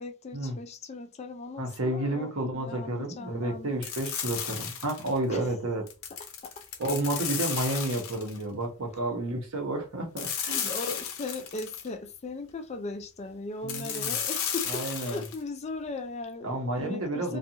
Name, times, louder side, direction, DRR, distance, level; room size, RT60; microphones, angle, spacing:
voice 1, 0.0-3.7 5.3-5.5 6.2-6.7 7.4-7.6 10.5-17.4, left 3 dB, 30° left, 0.4 m, -38 dB
voice 2, 1.6-5.9 6.8-10.7 13.6-14.1 14.7-15.2 16.4-17.4, right 1 dB, 70° right, 0.9 m, -31 dB
sound 1, 3.8-5.2 5.9-8.4 10.2-11.9 13.7-15.4, left 8 dB, 75° left, 0.6 m, -34 dB
2.5 x 2.4 x 2.8 m
head